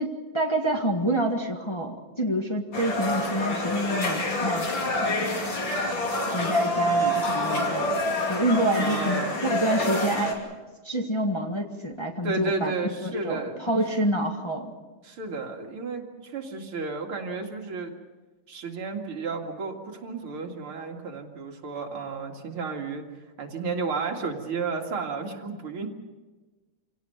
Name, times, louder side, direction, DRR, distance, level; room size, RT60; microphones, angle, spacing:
voice 1, 0.0-5.4 6.3-7.9 8.3-10.5 10.8-12.7 13.0-14.7, right 1 dB, 15° left, 2 dB, 1.5 m, -28 dB
sound 1, 2.7-10.3, left 1 dB, 60° left, 3.6 m, -27 dB
voice 2, 8.7-9.4 12.2-13.7 15.0-17.9 18.5-23.0 23.4-25.9, right 4 dB, 85° right, 2 dB, 3.1 m, -32 dB
27.0 x 17.5 x 6.8 m, 1.2 s
omnidirectional pair, 2.3 m